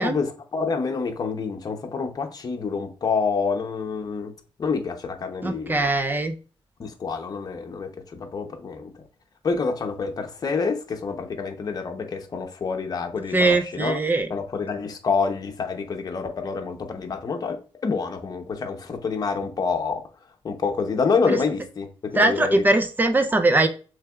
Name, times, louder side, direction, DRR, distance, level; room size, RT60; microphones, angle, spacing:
voice 1, 0.0-4.3 4.6-5.9 6.8-8.9 9.4-14.0 14.3-20.0 20.4-22.6, left 5 dB, 40° left, 0.8 m, -27 dB
voice 2, 5.4-6.3 13.3-14.3 21.3-21.4 22.2-23.7, right 2 dB, 20° right, 0.5 m, -21 dB
6.5 x 3.3 x 2.3 m
wide cardioid pair, 125°, 10 cm